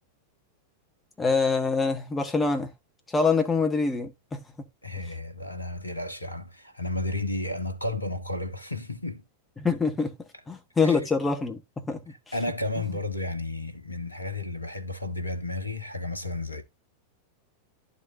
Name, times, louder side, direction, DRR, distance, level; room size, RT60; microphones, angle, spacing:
voice 1, 1.2-2.7 3.1-4.4 9.6-10.1 10.5-11.6 11.9-12.0 12.9-13.0, left 4 dB, 15° left, 1.2 m, -25 dB
voice 2, 4.8-9.2 10.8-11.0 12.3-16.6, left 2 dB, 85° left, 1.0 m, -32 dB
12.0 x 4.1 x 2.6 m
figure-of-eight pair, 90°, 0 cm